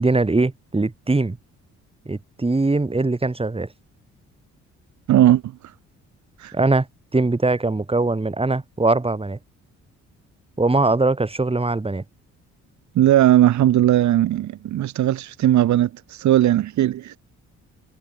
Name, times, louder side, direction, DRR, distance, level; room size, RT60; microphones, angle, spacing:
voice 1, 0.0-1.4 2.1-3.7 6.5-6.9 7.1-9.4 10.6-12.0, right 3 dB, 20° right, 7.1 m, -21 dB
voice 2, 5.1-5.5 6.4-6.5 12.9-17.2, right 13 dB, 70° right, 1.3 m, -18 dB
cardioid pair, 90°, 30 cm